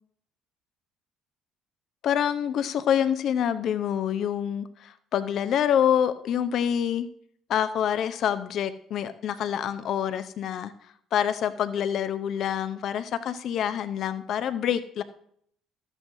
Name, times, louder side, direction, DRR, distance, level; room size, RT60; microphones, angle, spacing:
voice 1, 2.0-7.1 7.5-10.7 11.1-15.0, left 9 dB, 55° left, 12 dB, 0.7 m, -26 dB
13.0 x 9.9 x 2.7 m, 0.66 s
hypercardioid pair, 55°, 0 cm